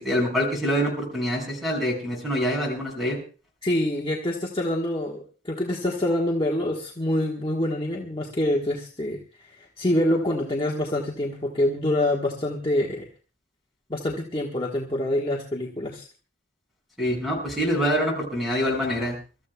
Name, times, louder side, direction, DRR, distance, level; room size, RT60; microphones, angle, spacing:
voice 1, 0.0-3.2 17.0-19.2, equal, ahead, -1 dB, 6.3 m, -25 dB
voice 2, 3.6-13.0 13.9-16.0, left 1 dB, 25° left, -2 dB, 1.3 m, -26 dB
27.5 x 13.5 x 2.3 m, 0.36 s
head